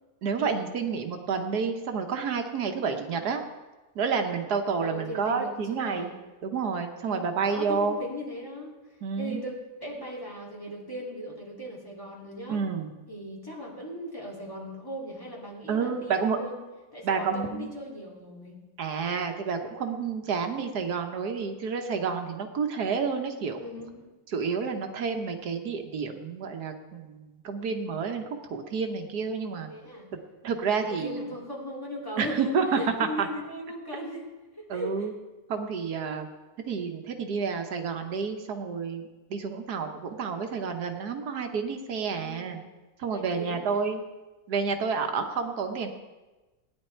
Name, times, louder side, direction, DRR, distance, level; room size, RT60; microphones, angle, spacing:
voice 1, 0.2-3.4 3.9-6.1 6.4-8.0 9.0-9.4 12.5-12.9 15.7-16.4 17.0-17.7 18.8-23.6 24.3-29.7 30.1-31.3 32.2-33.3 34.7-35.1 35.5-36.3 36.7-39.0 39.3-42.6 43.0-44.0 44.5-45.9, right 5 dB, 85° right, 5 dB, 1.6 m, -29 dB
voice 2, 4.8-6.2 7.1-8.7 9.2-9.5 9.8-12.6 13.1-16.6 16.9-18.6 23.6-24.1 29.7-30.1 30.9-34.3 34.6-35.1 42.1-42.6 43.1-43.9, equal, 15° left, -3 dB, 2.6 m, -38 dB
17.0 x 9.9 x 4.5 m, 1.2 s
omnidirectional pair, 1.6 m